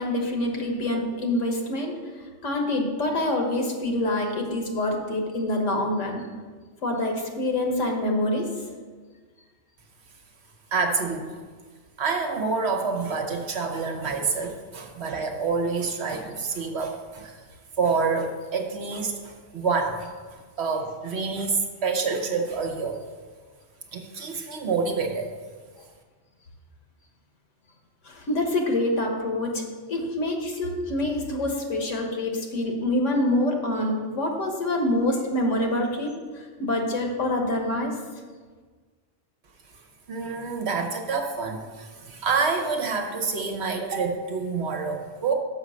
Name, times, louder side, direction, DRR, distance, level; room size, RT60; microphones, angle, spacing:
voice 1, 0.0-6.2 6.8-8.5 28.0-29.6 29.9-38.0, left 1 dB, 90° left, 1 dB, 1.6 m, -26 dB
voice 2, 10.7-11.3 12.0-17.4 17.8-23.0 23.9-25.3 40.1-45.3, right 4 dB, 60° right, 4 dB, 1.2 m, -27 dB
6.7 x 5.6 x 6.2 m, 1.5 s
omnidirectional pair, 1.3 m